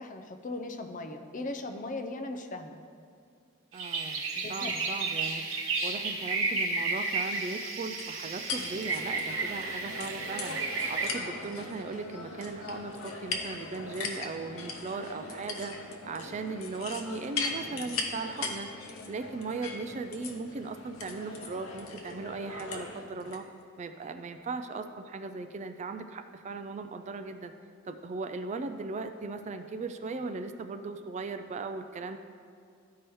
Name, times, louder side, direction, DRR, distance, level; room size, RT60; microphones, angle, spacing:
voice 1, 0.0-2.8 4.3-4.8, left 2 dB, 40° left, 6 dB, 0.5 m, -38 dB
voice 2, 3.7-4.2 4.5-10.6 10.9-15.7 16.0-18.7 19.1-23.5 23.8-27.5 27.8-32.2, right 4 dB, 35° right, 8 dB, 0.3 m, -38 dB
sound 1, 3.7-11.0, right 3 dB, 85° right, 1.0 m, -32 dB
sound 2, 8.0-23.4, left 4 dB, 85° left, 0.8 m, -39 dB
13.0 x 4.7 x 3.1 m, 2.3 s
head